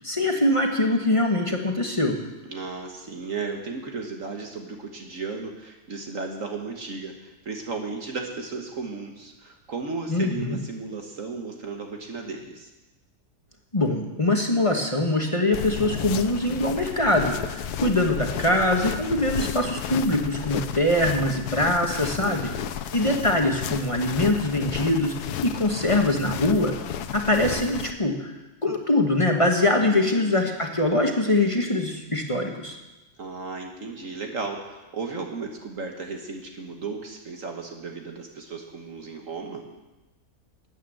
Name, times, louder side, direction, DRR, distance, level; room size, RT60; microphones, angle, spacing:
voice 1, 0.0-2.2 10.1-10.6 13.7-22.5 22.9-25.1 25.4-26.8 27.1-32.8, left 1 dB, 20° left, 2 dB, 1.2 m, -23 dB
voice 2, 2.5-12.7 22.2-22.8 23.3-23.4 29.9-30.3 33.2-39.7, right 4 dB, 55° right, 3 dB, 1.6 m, -35 dB
sound 1, 15.5-27.9, left 9 dB, 90° left, 1.2 m, -33 dB
13.0 x 9.0 x 7.8 m, 1.1 s
omnidirectional pair, 1.6 m